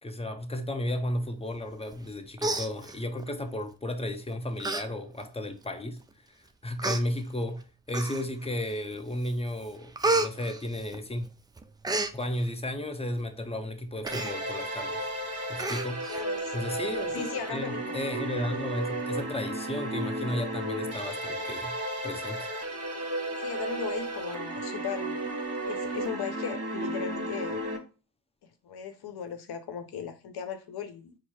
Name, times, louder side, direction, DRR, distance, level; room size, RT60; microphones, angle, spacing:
voice 1, 0.0-6.0 6.6-11.3 12.1-15.1 15.5-16.1 16.5-21.8 22.0-22.5, left 1 dB, 15° left, 0.7 m, -34 dB
Human voice, 1.9-2.1 2.4-3.3 4.0-4.2 4.6-4.8 5.2-5.3 6.1-6.2 6.8-7.0 7.9-8.5 8.9-9.3 9.6-11.3 11.6-12.1 14.0-14.3 14.7-14.8 15.1-15.2 15.6-16.2 16.6-16.7, right 2 dB, 10° right, 0.3 m, -30 dB
sound 1, 14.1-27.8, right 1 dB, 30° right, 1.4 m, -34 dB
voice 2, 16.1-16.6 17.1-18.0 23.4-25.3 25.7-27.6 28.4-31.1, left 7 dB, 55° left, 0.9 m, -37 dB
4.5 x 2.0 x 4.2 m
hypercardioid pair, 50°, 45 cm